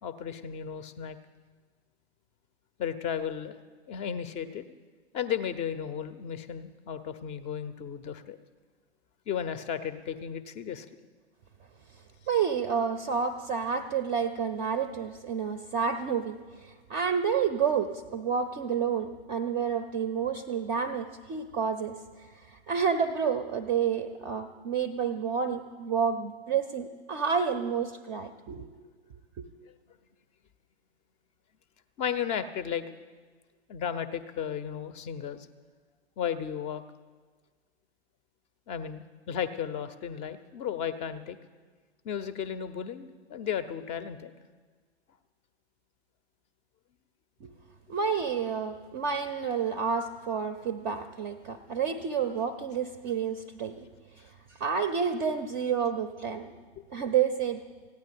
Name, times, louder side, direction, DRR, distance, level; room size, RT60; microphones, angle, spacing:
voice 1, 0.0-1.2 2.8-3.6 3.9-4.7 5.1-8.4 9.3-10.9 32.0-32.8 33.7-35.5 36.2-36.8 38.7-41.4 42.0-44.3, left 8 dB, 20° left, 13 dB, 0.6 m, -34 dB
voice 2, 12.3-22.0 22.5-28.8 29.4-29.5 47.4-47.5 47.9-53.9 54.2-54.3 54.6-56.5 56.9-57.6, right 6 dB, 20° right, 8 dB, 0.6 m, -29 dB
15.0 x 9.6 x 8.4 m, 1.5 s
figure-of-eight pair, 110°, 34 cm